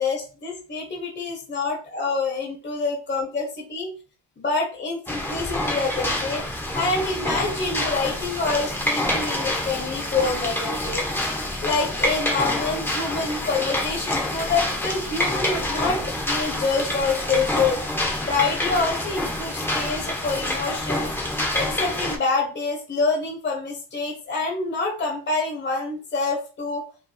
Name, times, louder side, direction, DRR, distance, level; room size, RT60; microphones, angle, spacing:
voice 1, 0.0-3.9 4.4-6.4 6.7-11.0 11.6-17.8 18.2-21.1 21.5-26.8, left 4 dB, 25° left, 0 dB, 1.2 m, -26 dB
sound 1, 5.1-22.2, left 1 dB, 5° left, 1.1 m, -27 dB
5.6 x 3.3 x 2.3 m, 0.36 s
cardioid pair, 115°, 41 cm